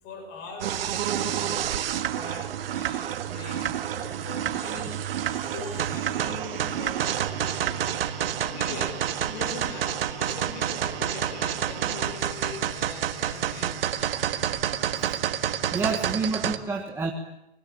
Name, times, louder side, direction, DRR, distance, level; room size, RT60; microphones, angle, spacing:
voice 1, 0.0-1.8 2.0-13.8 15.7-16.0 16.5-16.6, left 4 dB, 30° left, 4 dB, 6.9 m, -41 dB
sound 1, 0.6-16.6, right 10 dB, 60° right, 1.8 m, -29 dB
sound 2, 6.2-12.2, right 8 dB, 35° right, 4.5 m, -42 dB
voice 2, 15.7-17.1, right 4 dB, 5° right, 1 dB, 1.5 m, -29 dB
24.5 x 20.5 x 8.6 m, 0.86 s
hypercardioid pair, 150°, 33 cm